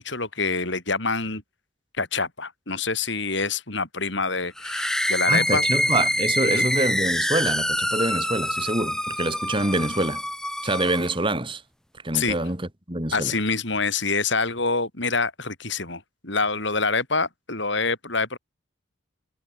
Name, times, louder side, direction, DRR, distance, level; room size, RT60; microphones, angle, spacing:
voice 1, 0.0-1.4 1.9-5.6 6.4-6.7 12.1-12.4 13.1-18.4, left 4 dB, 55° left, 5.1 m, -26 dB
sound 1, 4.6-11.1, left 1 dB, 5° left, 5.6 m, -26 dB
voice 2, 5.3-10.2 10.6-11.6 12.0-13.3, right 2 dB, 25° right, 2.4 m, -26 dB
head